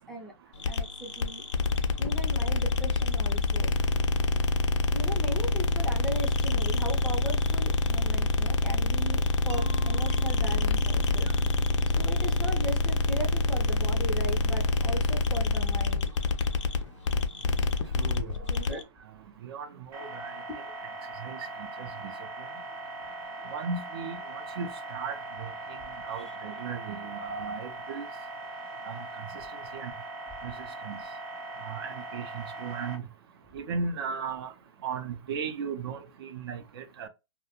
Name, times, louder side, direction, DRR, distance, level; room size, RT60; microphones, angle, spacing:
sound 1, 0.6-18.8, left 3 dB, 80° left, 0.4 m, -26 dB
voice 1, 0.7-1.4 2.0-3.7 4.9-11.3 11.9-16.1 18.5-18.8, right 1 dB, 5° left, 0.4 m, -38 dB
Mallet percussion, 9.5-14.3, right 5 dB, 90° right, 0.7 m, -47 dB
voice 2, 18.0-18.3 18.7-18.8 19.4-20.3 21.2-21.4 21.8-22.1 23.5-25.5 26.0-28.0 28.8-29.2 29.5-29.9 30.4-30.5 30.8-31.0 31.6-33.0 33.5-34.5 34.8-37.1, right 5 dB, 55° right, 0.5 m, -36 dB
sound 2, 19.9-33.0, right 2 dB, 20° right, 0.8 m, -40 dB
2.4 x 2.1 x 2.8 m
hypercardioid pair, 150°, 15 cm